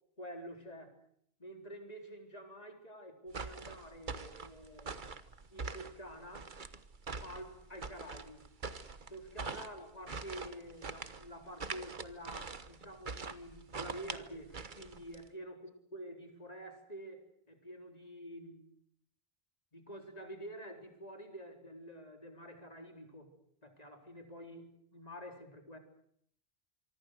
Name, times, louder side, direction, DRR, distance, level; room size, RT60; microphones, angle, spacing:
voice 1, 0.2-1.0 1.4-5.1 5.5-6.6 7.2-8.5 9.1-18.6 19.7-23.3 23.6-25.8, equal, 40° left, 4.1 m, -48 dB
sound 1, 3.3-15.3, right 4 dB, 50° right, 1.4 m, -44 dB
26.5 x 24.0 x 6.5 m
omnidirectional pair, 1.1 m